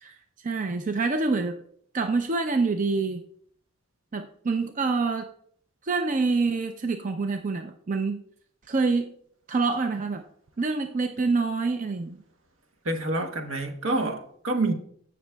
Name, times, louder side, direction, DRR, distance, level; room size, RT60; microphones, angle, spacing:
voice 1, 0.4-1.6 1.9-3.2 4.1-5.3 5.8-8.2 8.7-9.1 9.5-10.2 10.6-12.2, right 4 dB, 40° right, 0.5 m, -26 dB
voice 2, 12.8-14.7, right 2 dB, 75° right, 1.1 m, -27 dB
15.0 x 6.2 x 2.3 m
head